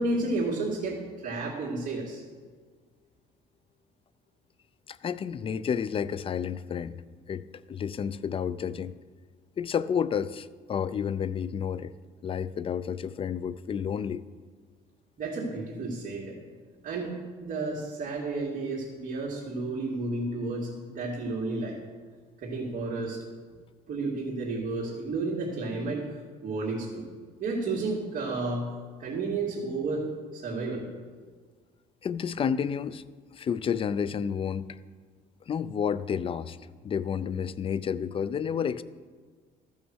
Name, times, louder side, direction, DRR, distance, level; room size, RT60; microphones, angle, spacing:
voice 1, 0.0-2.2 15.2-16.4 16.8-21.8 22.4-23.2 23.9-26.0 26.4-27.1 27.4-28.7 29.0-30.1 30.3-30.8, right 3 dB, 50° right, -5 dB, 2.5 m, -31 dB
voice 2, 4.9-7.0 7.3-8.9 9.6-11.9 12.2-14.2 32.0-33.0 33.3-34.8 35.5-36.6 36.8-38.8, left 7 dB, 35° left, 16 dB, 0.4 m, -30 dB
14.0 x 6.3 x 6.3 m, 1.5 s
cardioid pair, 110°, 17 cm